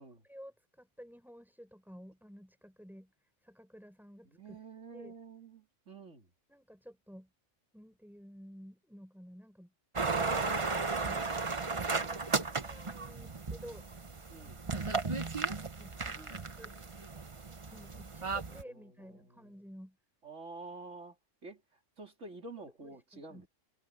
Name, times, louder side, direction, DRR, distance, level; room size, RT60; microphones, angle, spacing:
voice 1, 0.2-4.6 4.9-5.1 6.5-7.3 7.7-13.9 15.8-16.8 17.7-20.0 22.8-23.5, equal, ahead, 5.5 m, -53 dB
voice 2, 4.3-6.3 14.3-14.6 18.5-18.9 20.2-21.2 21.4-21.6 22.0-23.5, right 3 dB, 70° right, 3.5 m, -48 dB
sound 1, 10.0-18.6, right 4 dB, 25° right, 0.9 m, -35 dB
omnidirectional pair, 1.3 m